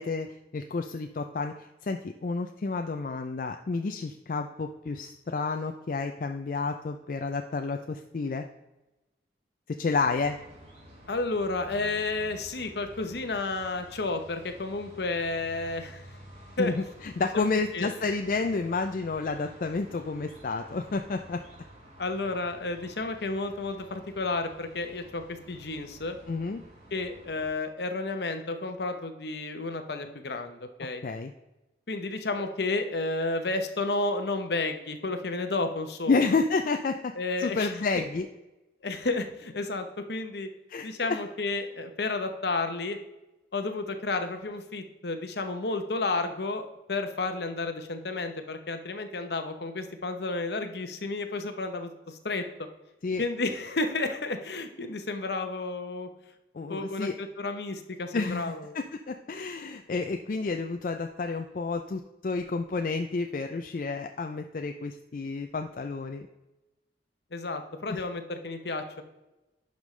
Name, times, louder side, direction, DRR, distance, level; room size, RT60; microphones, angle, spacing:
voice 1, 0.0-8.5 9.7-10.4 16.6-21.4 26.3-26.6 31.0-31.3 36.1-37.1 37.4-38.3 40.7-40.9 53.0-53.2 56.5-57.1 58.1-66.3 67.9-68.0, left 4 dB, 50° left, 5 dB, 0.4 m, -30 dB
sound 1, 9.9-27.5, equal, 35° right, 3.0 m, -51 dB
voice 2, 11.1-16.0 16.6-16.7 17.3-17.9 22.0-26.2 26.9-31.0 31.9-36.2 37.2-38.0 38.8-40.5 40.8-43.0 43.5-52.7 53.2-56.1 56.7-58.7 67.3-69.0, left 3 dB, 65° left, 7 dB, 0.9 m, -32 dB
11.0 x 5.3 x 3.2 m, 1.0 s
head